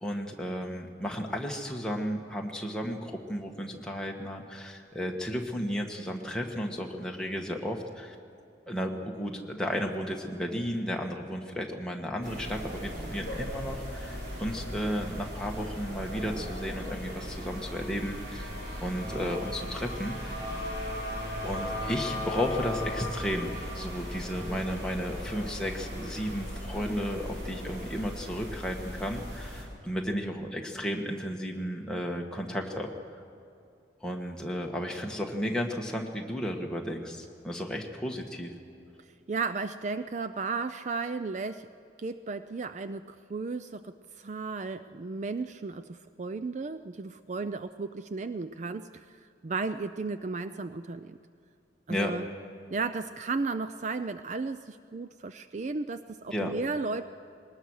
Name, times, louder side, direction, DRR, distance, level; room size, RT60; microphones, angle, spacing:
voice 1, 0.0-8.1 8.7-18.5 18.8-20.4 21.4-33.2 34.0-38.5 51.9-52.1 56.3-56.5, equal, 5° left, 0 dB, 1.6 m, -33 dB
sound 1, 12.2-29.6, left 1 dB, 60° right, 4.7 m, -37 dB
voice 2, 39.3-41.7 42.0-49.2 49.4-51.2 51.9-52.2 52.7-57.0, right 4 dB, 40° right, 11 dB, 0.4 m, -34 dB
21.0 x 19.5 x 6.4 m, 2.5 s
head